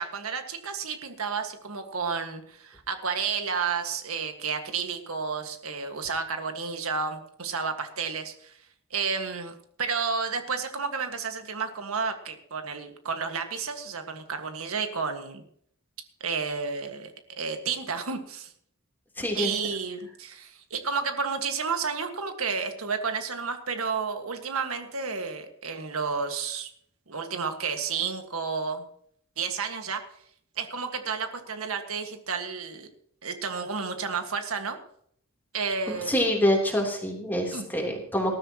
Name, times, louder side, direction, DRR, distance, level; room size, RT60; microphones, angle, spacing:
voice 1, 0.0-8.5 8.9-15.4 16.2-18.5 19.3-26.7 27.1-28.8 29.4-30.0 30.6-32.9 33.2-34.8 35.5-36.2 37.5-37.6, right 5 dB, 85° right, 6 dB, 1.7 m, -31 dB
voice 2, 19.2-19.5 36.1-38.4, left 1 dB, 10° left, 0 dB, 3.3 m, -26 dB
19.5 x 12.5 x 3.0 m, 0.66 s
head